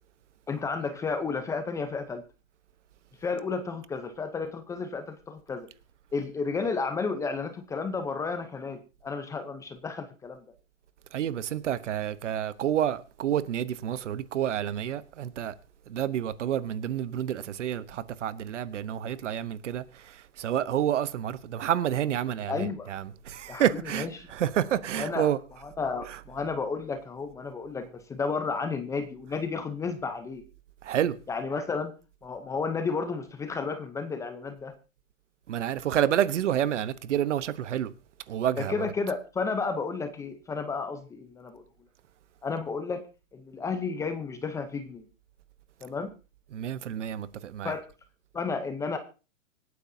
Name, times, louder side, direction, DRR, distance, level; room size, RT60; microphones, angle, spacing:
voice 1, 0.5-2.2 3.2-5.7 6.1-10.4 22.5-22.9 23.5-24.3 24.9-25.3 25.6-30.4 31.3-31.9 32.2-34.7 38.6-41.6 42.4-43.0 43.3-45.1 45.8-46.1 47.6-47.8 48.3-49.0, left 4 dB, 10° left, 0.7 m, -32 dB
voice 2, 11.1-15.5 15.9-24.1 24.3-25.4 30.8-31.2 35.5-37.9 38.3-38.9 46.5-47.7, right 10 dB, 60° right, 1.1 m, -29 dB
25.0 x 9.4 x 2.8 m
hypercardioid pair, 140°, 40 cm